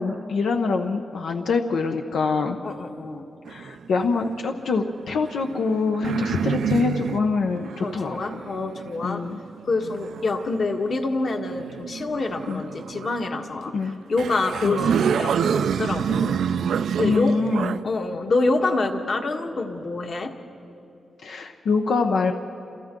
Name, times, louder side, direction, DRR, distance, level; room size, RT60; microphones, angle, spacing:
voice 1, 0.0-2.6 3.5-8.4 9.0-9.4 12.5-12.6 13.7-14.0 14.6-14.8 17.0-17.7 21.2-22.3, left 4 dB, 85° left, 4 dB, 1.0 m, -24 dB
voice 2, 2.6-3.2 6.1-6.5 7.8-9.2 9.6-13.7 14.1-16.4 17.0-17.3 17.8-20.3, left 3 dB, 50° left, 3 dB, 1.6 m, -26 dB
sound 1, 3.5-4.4 5.2-10.6 11.5-13.2 13.9-14.0 14.2-17.8, right 7 dB, 90° right, 0.5 m, -28 dB
29.5 x 28.0 x 3.8 m, 2.6 s
wide cardioid pair, 140°, 0 cm